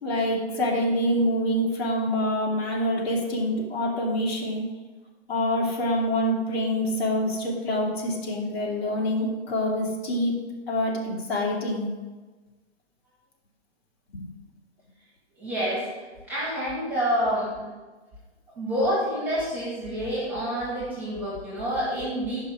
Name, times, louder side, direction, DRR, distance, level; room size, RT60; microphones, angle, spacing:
voice 1, 0.0-4.7 5.3-10.4 10.7-11.9 14.1-14.3, left 1 dB, 65° left, -2 dB, 2.7 m, -26 dB
voice 2, 15.4-15.9 16.3-17.7 18.6-22.5, equal, 5° right, -7 dB, 1.9 m, -28 dB
10.5 x 5.7 x 5.1 m, 1.3 s
hypercardioid pair, 170°, 34 cm